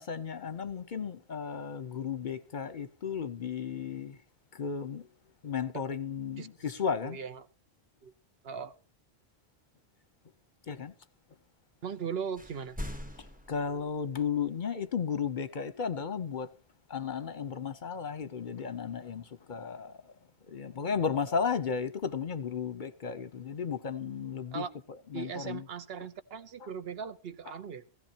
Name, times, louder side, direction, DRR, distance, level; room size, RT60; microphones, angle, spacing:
voice 1, 0.0-4.2 4.6-5.1 5.4-7.2 10.7-10.9 13.5-16.5 16.9-19.9 20.5-25.6 26.6-26.7 27.5-27.6, left 6 dB, 50° left, 0.8 m, -34 dB
voice 2, 7.0-7.5 8.0-8.1 8.4-8.7 11.8-12.8 24.5-24.7 25.1-27.8, right 6 dB, 65° right, 1.0 m, -38 dB
sound 1, 11.9-12.1 12.3-14.4, left 1 dB, 10° right, 0.8 m, -43 dB
16.5 x 15.5 x 2.8 m
omnidirectional pair, 1.1 m